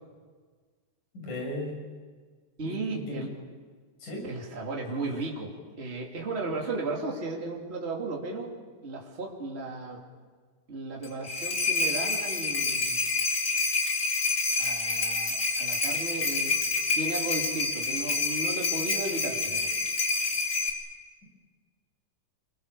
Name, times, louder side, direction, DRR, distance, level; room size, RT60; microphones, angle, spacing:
voice 1, 1.1-1.8 2.7-3.2 4.0-4.2, left 1 dB, 85° left, 0 dB, 7.9 m, -36 dB
voice 2, 2.6-3.3 4.3-8.5 8.8-10.0 10.7-13.0 14.6-16.6 16.9-19.7, right 2 dB, 20° right, -1 dB, 2.9 m, -35 dB
sound 1, 11.0-20.7, left 3 dB, 25° left, 2.9 m, -28 dB
27.5 x 22.5 x 6.9 m, 1.5 s
omnidirectional pair, 3.5 m